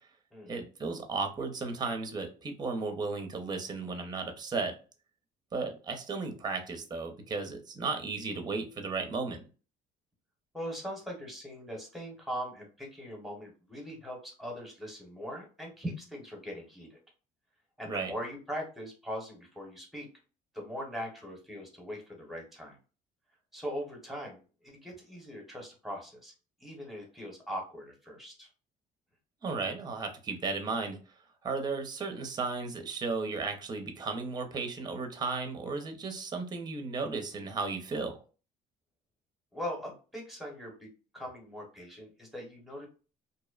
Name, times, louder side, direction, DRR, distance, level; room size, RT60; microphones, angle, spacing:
voice 1, 0.5-4.8 5.5-9.4 17.9-18.1 29.4-31.0 31.4-38.2, right 4 dB, 25° right, 5 dB, 0.5 m, -34 dB
voice 2, 10.5-17.0 17.8-20.1 20.5-22.8 23.5-26.3 26.6-28.5 39.5-40.9 41.1-42.9, equal, ahead, 0 dB, 0.9 m, -40 dB
2.6 x 2.0 x 2.3 m, 0.36 s
cardioid pair, 110°, 17 cm